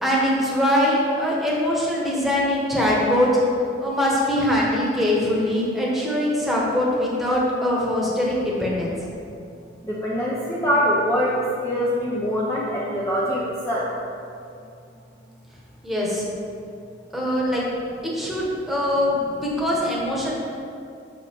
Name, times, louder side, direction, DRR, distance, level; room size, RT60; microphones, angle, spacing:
voice 1, 0.0-3.3 3.8-8.9 15.8-16.2 17.1-17.6 18.0-20.3, left 1 dB, ahead, -5 dB, 1.3 m, -22 dB
voice 2, 9.8-11.4 11.6-13.9, equal, 15° left, -7 dB, 0.7 m, -23 dB
6.4 x 5.7 x 4.6 m, 2.5 s
head